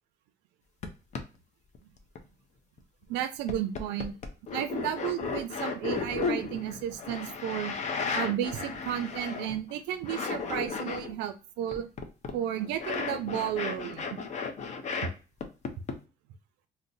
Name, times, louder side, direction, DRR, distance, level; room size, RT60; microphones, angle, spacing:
sound 1, 0.8-0.9 1.1-1.2 1.7-2.2 2.8-2.9 3.5-9.7 10.0-11.1 11.7-15.1 15.4-16.0, left 5 dB, 45° left, 0.5 m, -34 dB
voice 1, 3.1-4.1 4.5-7.7 8.1-11.9 12.3-14.0 15.0-15.1, right 11 dB, 90° right, 8 dB, 0.4 m, -33 dB
2.6 x 2.1 x 3.8 m, 0.33 s
cardioid pair, 110°, 17 cm